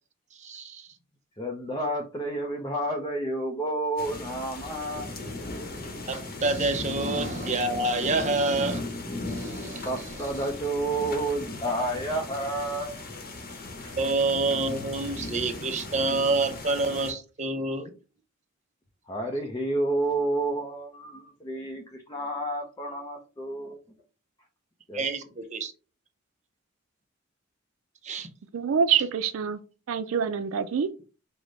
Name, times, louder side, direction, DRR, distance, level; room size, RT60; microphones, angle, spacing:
voice 1, 0.4-0.9 6.1-8.8 9.3-10.3 14.0-17.9 24.9-25.7 28.0-28.3, right 3 dB, 35° right, 0.6 m, -28 dB
voice 2, 1.4-5.1 9.8-13.0 13.8-13.9 19.1-23.8 24.9-25.1, right 1 dB, 20° left, 0.5 m, -30 dB
sound 1, 4.0-17.1, left 2 dB, 50° left, 0.9 m, -37 dB
voice 3, 28.5-29.6 29.9-30.9, right 7 dB, 80° right, 0.4 m, -25 dB
4.8 x 2.1 x 3.8 m
head